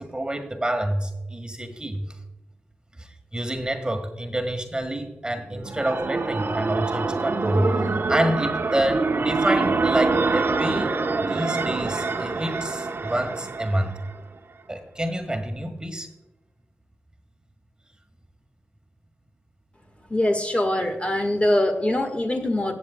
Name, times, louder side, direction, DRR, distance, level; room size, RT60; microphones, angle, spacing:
voice 1, 0.0-2.1 3.0-10.9 11.3-14.0 14.7-16.1, right 1 dB, 20° right, 5 dB, 1.6 m, -28 dB
sound 1, 5.4-14.2, right 3 dB, 55° right, 0.9 m, -25 dB
voice 2, 20.1-22.7, left 1 dB, 25° left, 5 dB, 1.6 m, -23 dB
16.0 x 8.2 x 2.3 m, 0.98 s
cardioid pair, 60°, 4 cm